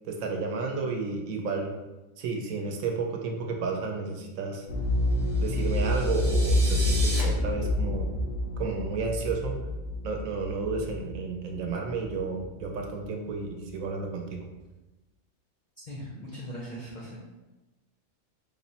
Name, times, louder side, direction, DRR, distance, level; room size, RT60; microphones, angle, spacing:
voice 1, 0.1-1.7 2.2-4.7 5.4-8.1 8.6-9.6 10.0-14.4, right 4 dB, 80° right, 2 dB, 1.0 m, -32 dB
sound 1, 4.7-12.4 12.7-12.8, left 1 dB, 90° left, 1.2 m, -28 dB
sound 2, 5.3-7.2, right 2 dB, 45° right, 0.9 m, -37 dB
voice 2, 15.9-17.2, equal, 55° left, -5 dB, 0.5 m, -39 dB
3.3 x 2.0 x 4.1 m, 1.1 s
omnidirectional pair, 1.5 m